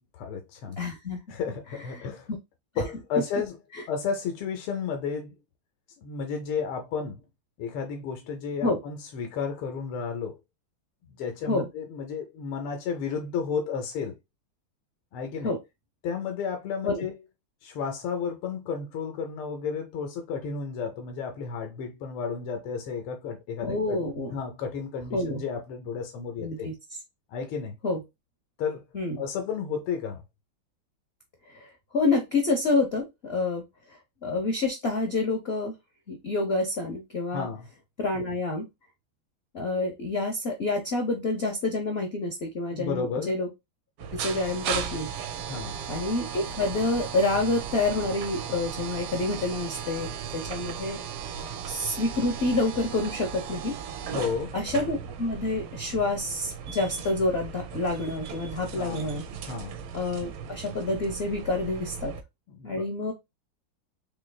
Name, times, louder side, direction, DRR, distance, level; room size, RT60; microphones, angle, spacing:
voice 1, 0.1-0.8 1.3-2.3 2.8-3.6 3.9-5.4 6.0-7.2 7.6-10.4 11.2-14.1 15.1-15.5 16.0-17.1 17.6-24.0 24.3-26.7 27.3-27.8 28.6-28.8 29.2-30.2 37.3-37.7 42.7-43.4 45.5-45.8 54.1-54.5 58.7-59.2 59.4-59.8 62.5-62.8, left 6 dB, 85° left, 1.7 m, -32 dB
voice 2, 0.8-1.2 1.9-2.1 8.6-8.8 11.4-11.7 15.4-15.6 16.8-17.0 23.6-24.3 25.1-25.4 26.4-26.7 27.8-28.0 28.9-29.2 31.5-33.6 33.9-35.7 36.1-37.5 38.0-38.6 39.5-43.5 44.1-45.1 45.9-50.1 50.3-51.0 51.7-53.7 54.5-59.2 59.9-62.1 62.6-63.1, left 2 dB, 65° left, 0.6 m, -28 dB
sound 1, 44.0-62.2, right 7 dB, 85° right, 1.6 m, -36 dB
4.5 x 3.2 x 2.2 m
omnidirectional pair, 2.3 m